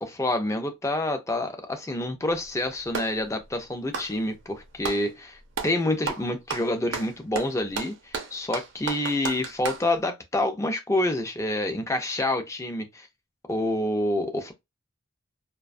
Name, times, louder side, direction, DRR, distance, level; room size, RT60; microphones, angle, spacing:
voice 1, 0.0-13.1 13.5-14.5, left 1 dB, 15° left, 0.4 m, -28 dB
Clapping, 2.3-3.2 3.8-5.1 5.5-5.8 6.1-9.9, right 5 dB, 60° right, 0.5 m, -33 dB
2.4 x 2.2 x 2.4 m
head